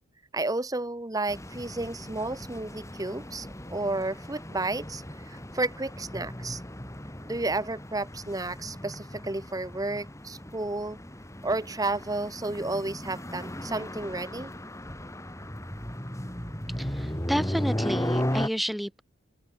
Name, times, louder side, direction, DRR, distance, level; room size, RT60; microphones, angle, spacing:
voice 1, 0.3-6.6 7.2-11.0 11.4-14.5, right 2 dB, 15° right, 1.0 m, -32 dB
sound 1, 1.3-18.5, equal, 15° left, 3.3 m, -36 dB
voice 2, 16.8-19.0, equal, ahead, 2.2 m, -30 dB
open air
head